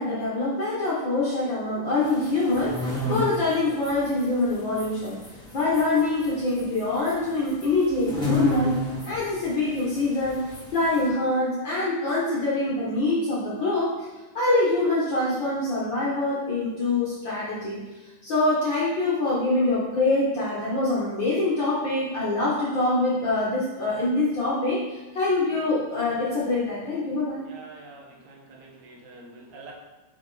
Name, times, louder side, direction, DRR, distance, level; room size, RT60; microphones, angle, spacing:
voice 1, 0.0-5.2 5.5-8.8 9.0-14.1 14.3-27.4, left 2 dB, 55° left, -6 dB, 1.3 m, -25 dB
sound 1, 2.0-11.1, left 2 dB, 25° left, 1.3 m, -33 dB
voice 2, 27.4-29.7, right 3 dB, 75° right, -1 dB, 2.5 m, -46 dB
5.9 x 5.3 x 3.9 m, 1.1 s
omnidirectional pair, 3.4 m